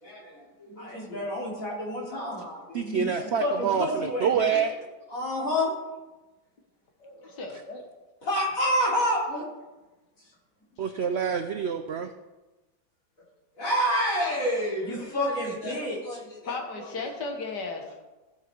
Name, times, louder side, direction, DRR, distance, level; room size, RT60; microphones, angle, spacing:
voice 1, 0.0-4.6 5.1-5.7 8.2-9.5 13.6-16.6, equal, 55° left, -5 dB, 3.5 m, -29 dB
voice 2, 2.7-4.7 10.8-12.1, right 7 dB, 90° right, 8 dB, 0.5 m, -27 dB
voice 3, 7.0-7.8 16.4-18.0, left 3 dB, 90° left, 3 dB, 2.0 m, -35 dB
15.5 x 5.8 x 4.6 m, 1.1 s
omnidirectional pair, 1.8 m